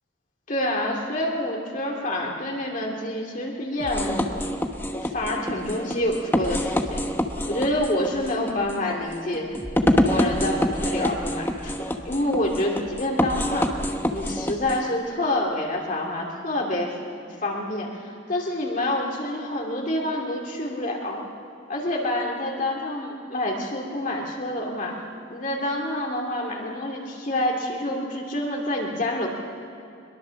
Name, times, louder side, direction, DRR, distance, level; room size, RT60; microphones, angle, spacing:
voice 1, 0.5-4.4 4.9-7.0 7.4-9.5 9.9-11.8 12.0-13.8 14.1-21.2 21.7-25.0 25.3-29.3, left 1 dB, 40° left, -1 dB, 2.7 m, -27 dB
sound 1, 3.8-14.8, left 1 dB, 10° left, 1.0 m, -26 dB
23.0 x 22.0 x 7.1 m, 2.5 s
head